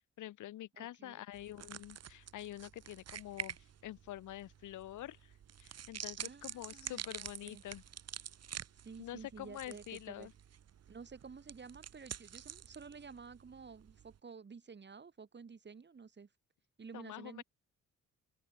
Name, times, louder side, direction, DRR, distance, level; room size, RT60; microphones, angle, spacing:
voice 1, 0.2-7.8 9.0-10.3 16.9-17.4, left 14 dB, 80° left, 3.6 m, -47 dB
voice 2, 0.7-1.2 6.2-7.6 8.8-10.3 10.9-16.3 16.8-17.4, right 5 dB, 35° right, 7.5 m, -52 dB
sound 1, 1.3-14.2, right 9 dB, 55° right, 2.8 m, -48 dB
open air
cardioid pair, 90°, 30 cm